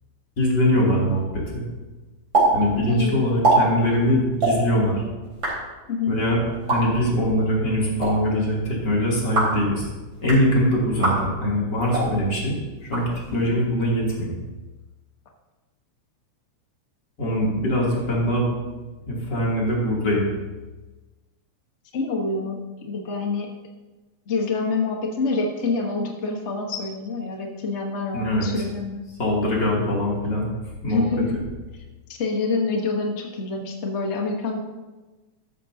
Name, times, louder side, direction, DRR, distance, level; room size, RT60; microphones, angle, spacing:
voice 1, 0.4-1.7 2.5-5.0 6.1-9.9 10.2-14.4 17.2-18.6 19.1-20.3 28.1-28.5 29.2-30.5 30.8-31.1, equal, 35° left, -4 dB, 3.3 m, -22 dB
sound 1, 2.3-2.5 2.7-2.8 3.3-3.6 4.3-4.5 5.2-5.5 6.5-6.8 7.8-8.1 9.2-9.6 10.1-10.4 10.9-11.2 11.8-12.1 12.8-13.5, right 3 dB, 40° right, 5.1 m, -23 dB
voice 2, 2.9-3.3 5.9-6.2 21.9-23.5 24.3-29.1 30.9-31.4 32.1-34.6, left 4 dB, 85° left, 1 dB, 0.6 m, -26 dB
13.0 x 13.0 x 2.8 m, 1.2 s
omnidirectional pair, 3.3 m